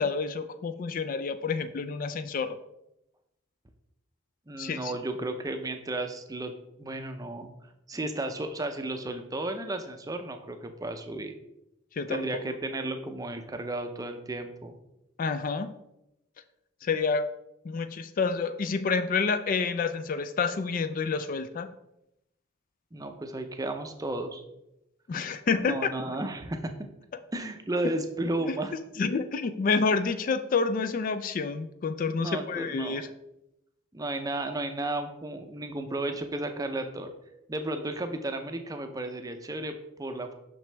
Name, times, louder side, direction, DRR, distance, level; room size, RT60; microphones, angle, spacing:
voice 1, 0.0-2.6 4.6-4.9 11.9-12.6 15.2-15.7 16.8-17.3 17.6-21.7 25.1-25.9 27.8-27.9 28.5-28.6 29.0-33.1, left 4 dB, 45° left, 10 dB, 0.3 m, -28 dB
voice 2, 4.5-6.5 6.8-7.5 7.9-11.4 12.1-14.8 22.9-24.4 25.6-26.7 27.3-28.7 32.2-33.0 33.9-37.1 37.5-40.3, right 2 dB, 20° right, 6 dB, 0.5 m, -33 dB
6.1 x 5.9 x 3.3 m, 0.86 s
head